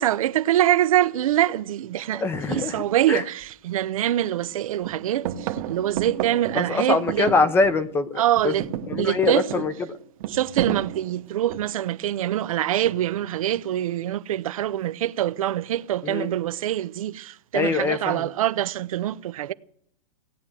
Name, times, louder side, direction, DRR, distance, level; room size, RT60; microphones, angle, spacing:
voice 1, 0.0-2.2 2.5-7.3 8.2-8.6 9.0-9.4 10.3-19.5, right 12 dB, 65° right, 0.7 m, -24 dB
voice 2, 2.1-3.3 6.5-8.5 8.9-10.0 16.0-16.3 17.5-18.3, left 4 dB, 10° left, 0.7 m, -24 dB
sound 1, 3.4-3.5 4.0-4.5 4.8-8.0 8.3-11.9 12.8-13.3, right 10 dB, 40° right, 1.1 m, -32 dB
17.5 x 8.9 x 7.5 m
hypercardioid pair, 150°, 19 cm